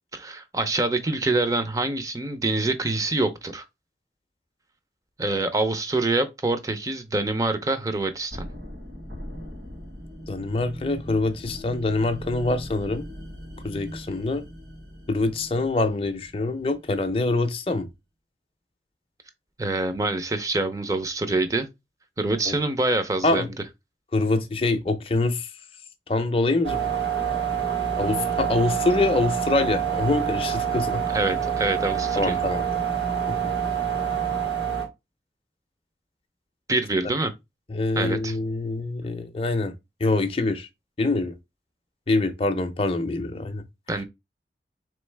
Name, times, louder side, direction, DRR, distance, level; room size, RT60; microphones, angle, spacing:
voice 1, 0.1-3.6 5.2-8.5 19.6-21.7 22.2-23.5 31.1-32.4 36.7-37.3 38.0-38.4 43.9-44.0, right 2 dB, 20° right, 0.5 m, -25 dB
sound 1, 8.3-17.2, equal, 65° right, 1.7 m, -40 dB
voice 2, 10.3-13.1 13.6-14.4 15.1-17.9 22.5-22.6 23.2-23.5 24.1-25.5 26.1-26.8 28.0-31.0 32.1-32.6 33.3-33.5 37.7-39.7 40.0-40.7 41.0-41.3 42.1-43.6, left 2 dB, 30° left, 0.5 m, -25 dB
room tone empty train station quiet, 26.6-34.9, right 8 dB, 85° right, 1.4 m, -26 dB
4.0 x 3.1 x 3.3 m
head